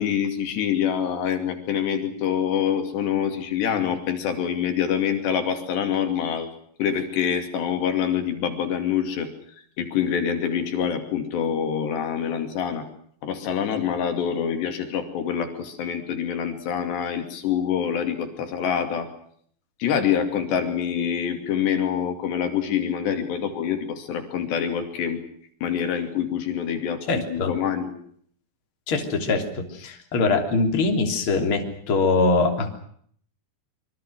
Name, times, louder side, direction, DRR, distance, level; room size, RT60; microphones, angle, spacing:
voice 1, 0.0-6.5 6.8-9.3 9.8-12.8 13.2-19.1 19.8-25.2 25.6-27.9, left 8 dB, 80° left, 6 dB, 4.9 m, -26 dB
voice 2, 27.1-27.5 28.9-32.8, left 3 dB, 30° left, 4 dB, 3.7 m, -23 dB
26.0 x 24.0 x 6.4 m, 0.62 s
omnidirectional pair, 4.9 m